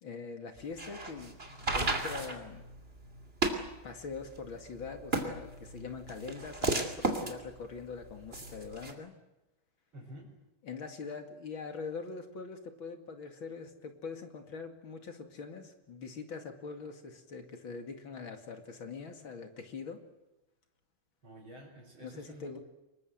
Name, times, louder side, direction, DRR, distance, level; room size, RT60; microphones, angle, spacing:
voice 1, 0.0-2.6 3.8-9.1 10.6-20.0 22.0-22.6, left 5 dB, 70° left, 6 dB, 3.1 m, -43 dB
sound 1, 0.6-8.9, right 2 dB, 25° right, 3.0 m, -35 dB
voice 2, 9.9-10.3 21.2-22.6, equal, 70° right, -4 dB, 5.6 m, -50 dB
25.0 x 22.0 x 7.9 m, 1.0 s
omnidirectional pair, 2.3 m